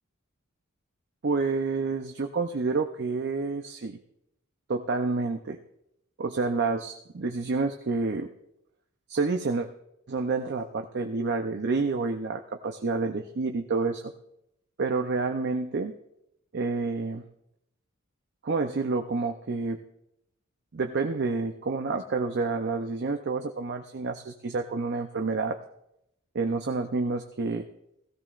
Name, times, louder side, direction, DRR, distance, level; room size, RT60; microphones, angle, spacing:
voice 1, 1.2-4.0 4.7-5.6 6.2-8.3 9.1-9.7 10.1-14.0 14.8-15.9 16.5-17.2 18.4-19.8 20.7-25.6 26.3-27.7, right 4 dB, 55° right, 5 dB, 0.6 m, -29 dB
17.0 x 15.0 x 2.5 m, 0.81 s
head